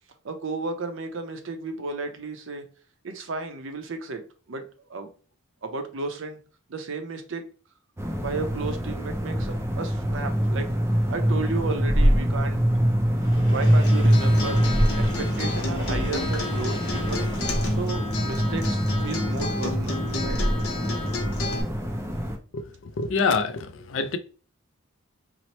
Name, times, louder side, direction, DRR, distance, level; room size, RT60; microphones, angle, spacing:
voice 1, 0.2-2.7 3.0-4.2 4.5-4.6 4.9-5.1 5.6-6.4 6.7-7.4 8.2-10.7 11.1-12.6 13.5-17.3 17.7-20.4, right 3 dB, 60° right, 0.5 m, -33 dB
sound 1, 8.0-22.4, equal, 10° right, 0.3 m, -24 dB
Train, 13.1-18.2, equal, 20° left, 0.9 m, -38 dB
Acoustic guitar, 13.6-21.6, left 3 dB, 80° left, 0.8 m, -32 dB
voice 2, 22.5-24.2, left 4 dB, 60° left, 0.4 m, -26 dB
2.9 x 2.0 x 4.1 m
head